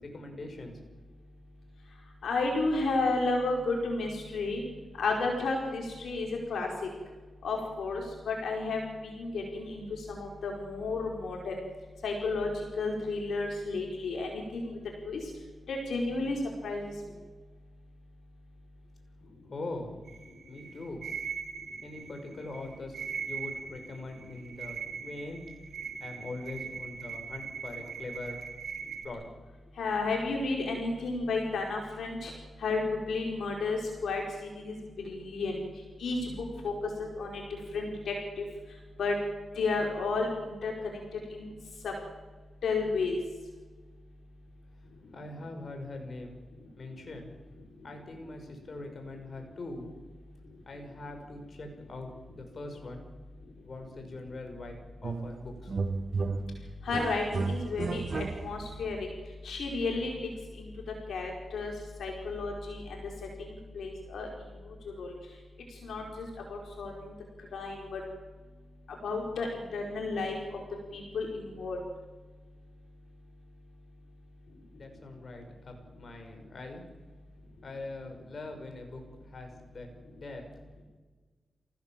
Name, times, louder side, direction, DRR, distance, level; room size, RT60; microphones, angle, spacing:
voice 1, 0.0-0.8 19.5-20.0 20.5-21.0 21.8-23.0 23.3-25.4 26.0-28.4 29.0-29.2 45.1-46.4 46.8-47.3 47.8-49.9 50.7-53.0 53.6-55.7 74.7-76.8 77.6-79.9 80.1-80.4, left 2 dB, 50° left, 4 dB, 5.9 m, -42 dB
voice 2, 2.2-4.6 5.0-6.7 7.4-9.8 10.1-11.5 12.0-12.5 12.8-14.7 15.0-15.2 15.7-16.4 16.6-16.9 29.8-32.3 32.6-32.8 33.1-34.2 34.6-34.7 35.0-35.6 36.0-36.3 36.6-36.7 37.0-37.4 37.7-38.5 39.0-39.2 39.6-40.7 41.3-41.5 41.8-41.9 42.6-43.2 56.8-59.0 59.4-60.1 60.6-60.7 61.1-61.7 62.0-63.0 63.7-64.3 65.0-65.1 65.8-66.9 67.5-68.0 69.0-70.6 70.9-71.8, left 3 dB, 80° left, 0 dB, 4.8 m, -32 dB
sound 1, 20.0-29.1, right 6 dB, 75° right, 2.9 m, -40 dB
sound 2, 55.0-55.4 55.7-58.8, right 4 dB, 55° right, 1.3 m, -33 dB
27.0 x 17.0 x 7.6 m, 1.3 s
cardioid pair, 60°, 0 cm